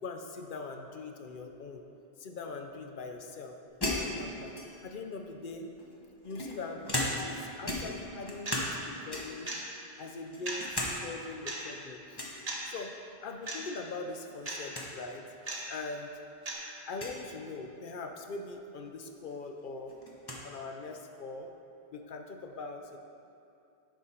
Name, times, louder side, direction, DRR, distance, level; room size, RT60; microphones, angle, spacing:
voice 1, 0.0-1.8 2.2-3.6 3.9-5.7 6.2-9.5 10.0-12.2 12.6-13.0 13.2-15.3 15.7-16.1 16.8-20.0 20.4-21.5 21.9-23.0, left 3 dB, 60° left, 4 dB, 0.7 m, -42 dB
sound 1, 3.8-5.0 5.8-7.4 7.6-8.8 9.1-9.5 10.0-11.0 11.3-11.4 12.1-12.4 13.8-14.2 14.5-14.6 14.7-14.9 15.7-15.8 16.9-17.2 18.9-19.0 19.3-20.4, left 1 dB, 25° left, 0.9 m, -36 dB
sound 2, 8.4-8.6 9.5-9.6 10.4-10.6 11.5-11.6 12.4-12.6 13.5-13.6 14.4-14.6 15.5-15.6 16.4-16.5, right 2 dB, 40° right, 1.1 m, -36 dB
10.0 x 4.6 x 4.3 m, 2.6 s
omnidirectional pair, 1.1 m